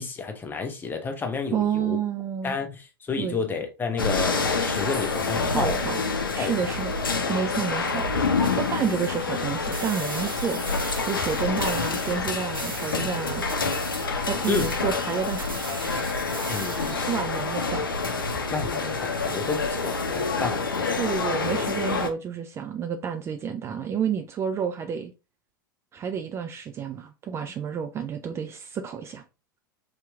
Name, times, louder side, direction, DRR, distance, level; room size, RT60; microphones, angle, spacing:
voice 1, 0.0-2.0 2.4-5.9 6.4-6.7 7.4-7.5 14.5-14.7 16.5-17.1 17.8-17.9 18.5-20.6, left 4 dB, 20° left, 0.8 m, -31 dB
voice 2, 1.5-2.6 3.2-3.4 5.5-6.0 6.3-6.9 7.3-10.6 11.0-13.4 14.2-15.6 16.7-17.9 21.0-25.1 25.9-29.2, right 7 dB, 25° right, 0.4 m, -30 dB
sound 1, 4.0-22.1, left 4 dB, 80° left, 0.6 m, -27 dB
sound 2, 9.7-12.2 12.5-13.0 13.5-17.2, right 2 dB, 90° right, 0.8 m, -38 dB
3.5 x 2.9 x 3.4 m
figure-of-eight pair, 90°, 11 cm